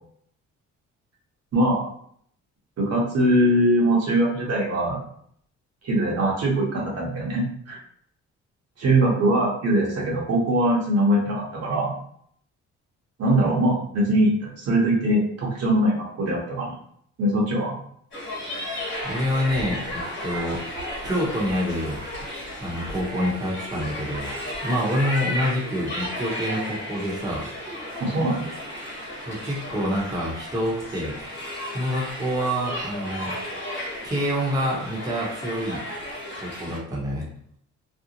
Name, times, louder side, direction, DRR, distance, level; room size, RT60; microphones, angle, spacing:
voice 1, 1.5-1.9 2.8-5.0 5.8-7.8 8.8-12.0 13.2-16.8 17.2-17.8 28.0-28.5, right 1 dB, 55° right, -3 dB, 0.9 m, -22 dB
sound 1, 18.1-36.8, equal, 40° left, 1.1 m, -34 dB
voice 2, 19.0-20.6 21.0-22.0 22.6-24.3 24.6-27.5 29.3-31.2 31.7-33.3 34.0-35.8 36.4-37.3, equal, 10° right, -5 dB, 0.8 m, -27 dB
2.6 x 2.0 x 2.8 m, 0.65 s
cardioid pair, 90°, 30 cm